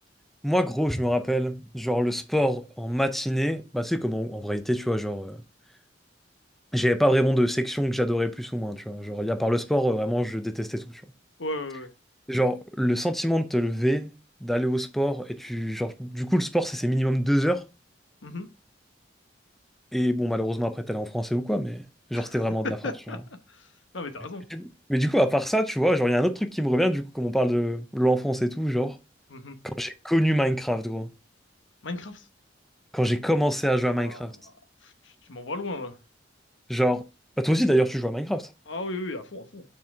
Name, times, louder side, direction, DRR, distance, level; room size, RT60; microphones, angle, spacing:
voice 1, 0.4-5.4 6.7-11.0 12.3-14.1 14.4-17.6 19.9-21.8 22.1-22.8 24.5-29.0 29.8-31.1 32.9-34.3 36.7-37.0 37.4-38.5, equal, ahead, 0.5 m, -25 dB
voice 2, 11.4-11.9 18.2-18.5 22.1-24.5 29.3-29.6 31.8-32.3 33.9-34.5 34.8-36.0 38.7-39.6, left 2 dB, 85° left, 1.1 m, -36 dB
6.0 x 4.4 x 4.6 m
head